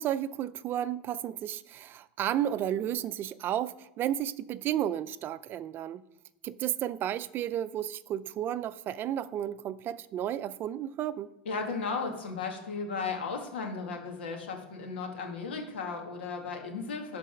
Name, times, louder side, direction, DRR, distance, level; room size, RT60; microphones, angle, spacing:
voice 1, 0.0-6.0 6.4-11.3, right 11 dB, 40° right, 0.5 m, -32 dB
voice 2, 11.5-17.2, left 4 dB, 85° left, 2.0 m, -35 dB
12.0 x 4.1 x 5.2 m
hypercardioid pair, 110°, 6 cm